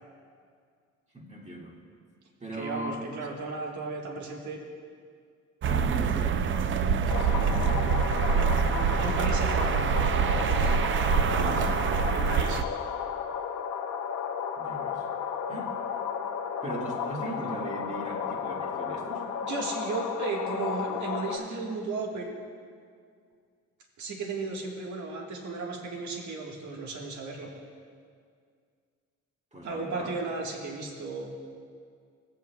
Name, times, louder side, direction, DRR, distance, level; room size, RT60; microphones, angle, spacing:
voice 1, 1.1-1.8 2.4-3.3 5.7-9.6 11.2-11.8 14.6-15.1 15.5-15.8 16.6-19.3 29.5-30.2, right 1 dB, 20° right, -2 dB, 1.9 m, -39 dB
voice 2, 2.5-4.6 9.0-10.1 10.5-10.8 12.1-12.7 19.4-22.3 24.0-27.5 29.6-31.3, right 3 dB, 70° right, -1 dB, 1.6 m, -35 dB
sound 1, 5.6-12.6, right 7 dB, 40° right, 0.4 m, -25 dB
sound 2, 7.1-21.4, left 7 dB, 80° left, 0.9 m, -33 dB
17.0 x 8.4 x 2.3 m, 2.1 s
cardioid pair, 90°, 30 cm